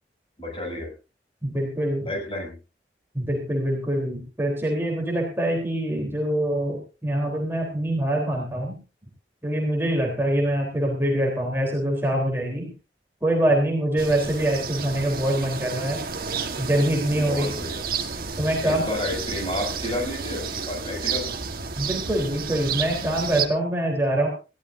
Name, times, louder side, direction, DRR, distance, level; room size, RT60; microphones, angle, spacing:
voice 1, 0.4-0.9 2.0-2.5 17.1-17.8 18.6-21.4, left 1 dB, 30° left, 0 dB, 7.6 m, -31 dB
voice 2, 1.4-2.1 3.1-8.8 9.4-12.7 13.2-16.1 16.6-17.5 18.4-18.8 21.8-24.3, right 1 dB, 15° right, -1 dB, 3.6 m, -24 dB
sound 1, 14.0-23.5, right 5 dB, 55° right, 1.4 m, -31 dB
20.5 x 16.0 x 2.6 m, 0.32 s
head